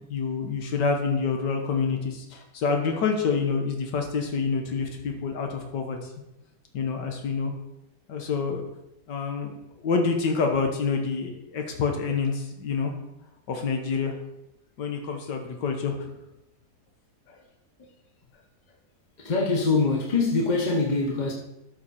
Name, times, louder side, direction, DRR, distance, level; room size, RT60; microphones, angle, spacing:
voice 1, 0.1-6.0 6.7-7.5 8.1-8.7 9.1-12.9 13.5-14.1 14.8-16.1 17.3-17.4, left 5 dB, 90° left, 3 dB, 1.8 m, -27 dB
voice 2, 19.2-21.3, left 3 dB, 30° left, 0 dB, 1.0 m, -24 dB
12.5 x 5.8 x 4.3 m, 0.89 s
omnidirectional pair, 1.8 m